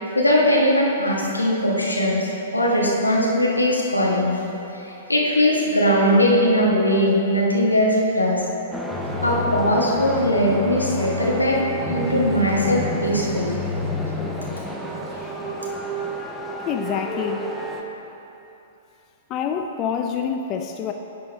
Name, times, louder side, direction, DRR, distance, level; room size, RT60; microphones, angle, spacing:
voice 1, 0.1-2.3 2.5-4.4 4.7-8.4 9.2-11.6 11.9-13.6, equal, 90° left, -3 dB, 1.4 m, -20 dB
sound 1, 8.7-17.8, left 1 dB, ahead, 0.7 m, -29 dB
voice 2, 16.6-17.5 19.3-20.9, left 7 dB, 35° left, 5 dB, 0.4 m, -26 dB
9.9 x 5.6 x 4.0 m, 3.0 s
figure-of-eight pair, 110°, 0 cm